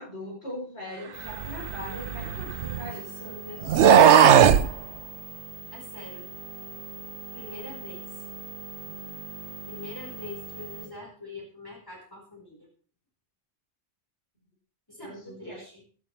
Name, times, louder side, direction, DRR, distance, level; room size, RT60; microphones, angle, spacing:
voice 1, 0.0-3.4 15.0-15.6, left 1 dB, 70° left, -4 dB, 8.0 m, -40 dB
sound 1, 1.1-10.9, right 4 dB, 25° right, 3.3 m, -41 dB
sound 2, 1.4-2.9 3.6-4.7, right 8 dB, 80° right, 1.0 m, -17 dB
voice 2, 3.2-4.5 5.7-6.3 7.3-8.0 9.7-12.7 14.9-15.8, left 2 dB, 20° left, -3 dB, 4.6 m, -43 dB
17.0 x 12.0 x 3.3 m, 0.41 s
omnidirectional pair, 1.1 m